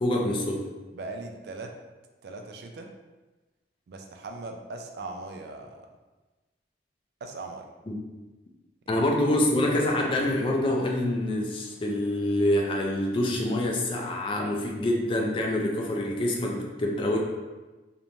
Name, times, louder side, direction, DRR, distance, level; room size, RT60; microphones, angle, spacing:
voice 1, 0.0-0.6 7.9-8.0 8.9-17.2, left 1 dB, 30° left, 1 dB, 0.3 m, -26 dB
voice 2, 0.9-1.7 2.2-2.9 3.9-5.9 7.2-7.6 8.9-9.1, right 3 dB, 60° right, 3 dB, 0.3 m, -39 dB
3.0 x 2.1 x 2.5 m, 1.2 s
head